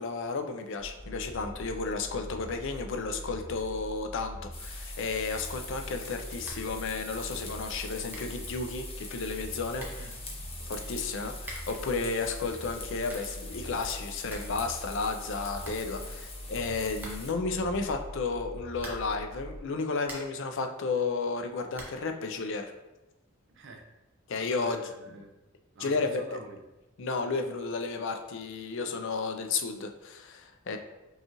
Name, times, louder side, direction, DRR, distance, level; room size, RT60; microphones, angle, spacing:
voice 1, 0.0-9.9 10.6-22.7 24.3-24.8 25.1-25.2 25.8-26.4 27.0-30.8, left 4 dB, 65° left, 5 dB, 0.4 m, -33 dB
sound 1, 0.8-19.6, equal, 85° right, 1.2 m, -43 dB
sound 2, 4.5-17.3, left 3 dB, 30° left, 0.8 m, -44 dB
sound 3, 6.4-6.8 7.1-7.2 7.8-7.9 8.1-8.4 9.4-9.5 9.8-10.1 11.4-11.9 12.8-13.4 13.8-13.9 14.1-14.6 14.9-15.0 15.3-15.4 15.6-16.4 17.0-17.5 18.7-19.2 19.7-20.5 21.7-22.1, right 1 dB, 10° right, 0.6 m, -45 dB
voice 2, 9.8-11.0 16.0-16.3 23.5-23.9 24.5-25.3 25.7-26.6 30.7-30.8, right 3 dB, 60° right, 4 dB, 0.5 m, -49 dB
5.3 x 2.4 x 2.9 m, 1.0 s
head